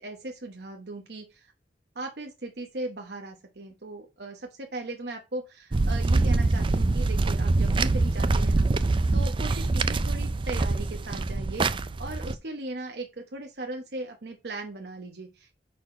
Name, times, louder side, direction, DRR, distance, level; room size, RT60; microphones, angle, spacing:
voice 1, 0.0-1.5 1.9-15.6, right 2 dB, 65° right, 2 dB, 1.0 m, -38 dB
sound 1, 5.7-12.3, right 3 dB, 30° right, 0.4 m, -24 dB
6.2 x 4.3 x 4.9 m, 0.26 s
head